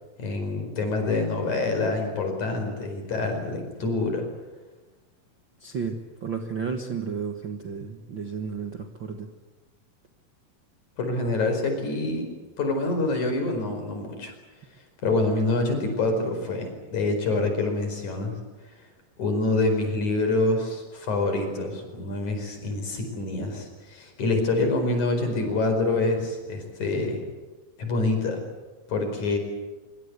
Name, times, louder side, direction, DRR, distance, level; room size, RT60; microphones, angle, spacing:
voice 1, 0.2-4.3 11.0-12.3 12.6-14.3 15.0-18.3 19.2-27.2 27.8-28.4 28.9-29.4, left 2 dB, 55° left, 5 dB, 6.0 m, -26 dB
voice 2, 5.6-9.3, right 6 dB, 50° right, 5 dB, 1.6 m, -32 dB
24.5 x 24.0 x 8.2 m, 1.2 s
omnidirectional pair, 4.0 m